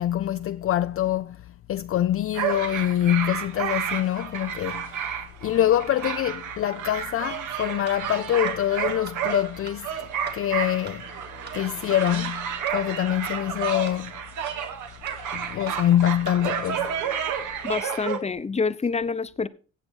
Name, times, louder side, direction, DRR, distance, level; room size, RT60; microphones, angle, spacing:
voice 1, 0.0-11.1 11.5-14.2 15.3-17.0, left 12 dB, 45° left, 0.4 m, -25 dB
sound 1, 2.3-18.2, right 8 dB, 85° right, 2.1 m, -31 dB
sound 2, 7.9-8.0 8.5-8.6 9.1-9.2 9.7-9.8 10.3-10.4 10.9-11.0 11.5-11.6 12.1-12.2 12.7-12.8 13.3-13.4 13.9-14.0 14.5-14.6 15.1-15.2 15.7-15.8 16.3-16.4, right 6 dB, 35° right, 2.0 m, -43 dB
voice 2, 17.6-19.5, left 4 dB, 20° left, 0.9 m, -27 dB
16.0 x 7.0 x 4.5 m
cardioid pair, 90°, 30 cm